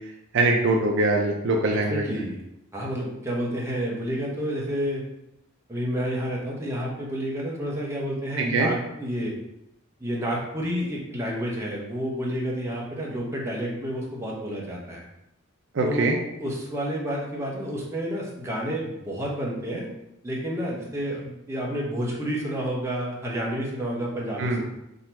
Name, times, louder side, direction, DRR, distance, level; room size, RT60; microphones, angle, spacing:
voice 1, 0.3-2.2 8.4-8.7 15.7-16.2 24.4-24.6, right 2 dB, 55° right, 1 dB, 0.5 m, -23 dB
voice 2, 1.5-2.4 2.7-5.0 5.7-9.3 10.0-15.0 15.8-16.1 16.4-19.9 20.2-24.6, equal, 15° right, -4 dB, 0.9 m, -30 dB
3.8 x 2.9 x 4.3 m, 0.87 s
head